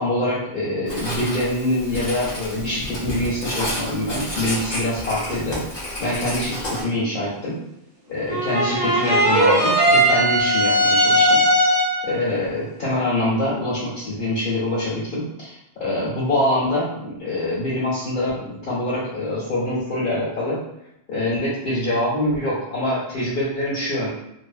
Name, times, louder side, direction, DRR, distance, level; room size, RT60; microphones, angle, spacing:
voice 1, 0.0-5.6 6.0-7.6 8.1-11.4 12.0-20.6 21.1-24.1, left 1 dB, 60° left, -9 dB, 1.1 m, -24 dB
Writing, 0.9-6.8, left 1 dB, 30° left, 0.5 m, -30 dB
sound 1, 8.3-12.1, equal, 65° right, 1.6 m, -18 dB
3.2 x 2.0 x 2.4 m, 0.83 s
omnidirectional pair, 1.1 m